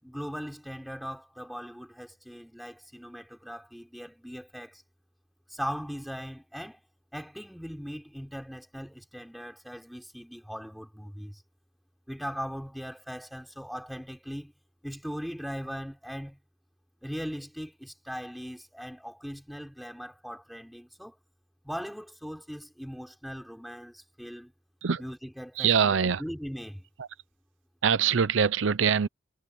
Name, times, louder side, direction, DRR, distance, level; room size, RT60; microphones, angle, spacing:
voice 1, 0.0-4.8 5.5-6.8 7.1-11.4 12.1-14.5 14.8-16.4 17.0-21.2 21.6-24.5 25.0-26.9, equal, ahead, 6.1 m, -39 dB
voice 2, 25.6-26.2 27.0-27.1 27.8-29.1, right 7 dB, 80° right, 0.6 m, -23 dB
head